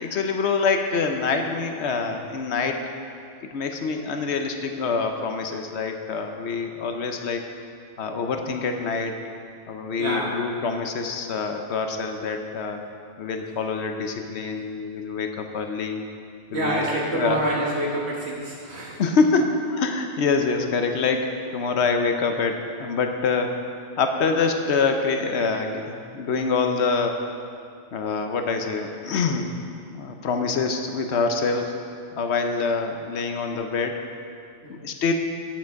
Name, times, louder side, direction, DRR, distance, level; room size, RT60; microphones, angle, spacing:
voice 1, 0.0-2.9 3.5-7.4 8.0-9.1 9.7-12.8 13.2-16.0 16.5-16.8 17.1-17.4 19.0-23.5 24.0-27.2 27.9-31.8 32.2-33.9 34.7-35.1, left 4 dB, 70° left, 5 dB, 0.9 m, -25 dB
voice 2, 10.0-10.4 16.5-19.0 34.6-34.7, right 1 dB, 65° right, -4 dB, 1.9 m, -27 dB
9.2 x 7.5 x 4.6 m, 2.4 s
omnidirectional pair, 1.2 m